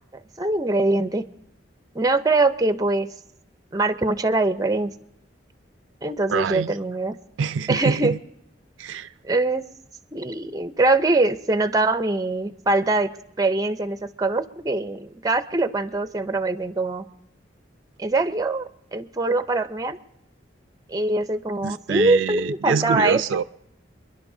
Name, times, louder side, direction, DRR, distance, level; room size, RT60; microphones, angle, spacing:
voice 1, 0.4-1.2 1.9-3.1 3.7-4.9 6.0-7.2 7.7-8.1 9.2-9.6 10.1-13.1 13.4-17.0 18.0-20.0 20.9-23.2, right 2 dB, 20° right, 0.5 m, -23 dB
voice 2, 6.3-6.8 7.4-8.2 8.8-9.1 21.6-23.4, right 6 dB, 85° right, 0.4 m, -25 dB
27.5 x 11.0 x 2.7 m
head